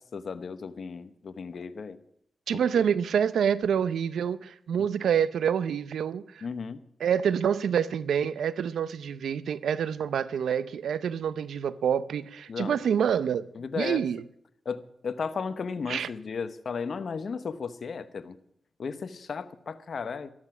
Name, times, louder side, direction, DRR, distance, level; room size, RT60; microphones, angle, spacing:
voice 1, 0.0-2.0 2.5-2.9 6.4-6.8 12.5-12.8 13.5-14.0 14.6-18.4 18.8-20.3, left 5 dB, 65° left, 0.9 m, -35 dB
voice 2, 2.5-6.5 7.0-13.5 13.8-14.2 15.9-16.1, right 8 dB, 85° right, 0.5 m, -27 dB
13.5 x 12.0 x 6.0 m
cardioid pair, 50°, 0 cm